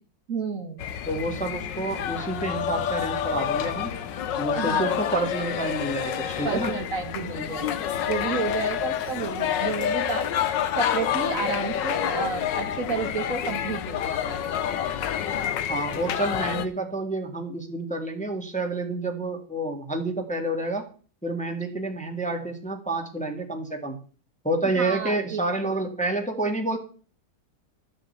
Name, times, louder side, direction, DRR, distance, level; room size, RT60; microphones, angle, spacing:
voice 1, 0.3-0.9 4.5-5.0 6.4-10.3 10.8-14.0 14.3-14.4 24.8-25.4, right 4 dB, 50° right, 6 dB, 1.8 m, -31 dB
sound 1, 0.8-16.7, left 9 dB, 80° left, 1.6 m, -28 dB
voice 2, 1.1-3.9 4.4-6.7 15.7-20.9 21.2-24.0 24.4-26.8, right 2 dB, 5° left, 3 dB, 1.7 m, -29 dB
13.0 x 6.5 x 7.8 m, 0.40 s
omnidirectional pair, 2.0 m